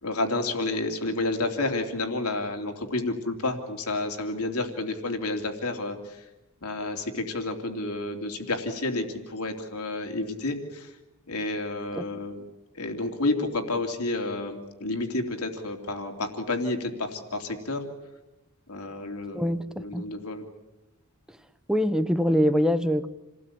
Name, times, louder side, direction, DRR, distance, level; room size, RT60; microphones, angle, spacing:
voice 1, 0.0-6.3 6.6-10.9 11.3-12.4 12.7-17.8 18.7-20.5, left 2 dB, 90° left, 4 dB, 3.1 m, -30 dB
voice 2, 19.3-20.0 21.7-23.1, equal, 5° right, 11 dB, 1.0 m, -24 dB
28.5 x 18.5 x 8.7 m, 1.0 s
head